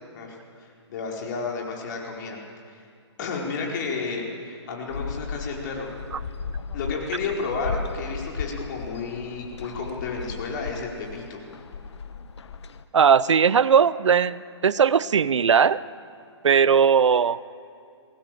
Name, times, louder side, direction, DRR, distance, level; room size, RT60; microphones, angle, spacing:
voice 1, 0.1-2.4 2.7-2.8 3.2-5.9 6.7-11.4, left 4 dB, 40° left, 0 dB, 4.6 m, -32 dB
sound 1, 4.9-12.8, left 5 dB, 70° left, 1.2 m, -36 dB
voice 2, 12.9-15.8 16.4-17.4, right 7 dB, 80° right, 18 dB, 0.7 m, -19 dB
22.0 x 18.0 x 7.7 m, 2.3 s
hypercardioid pair, 150°, 15 cm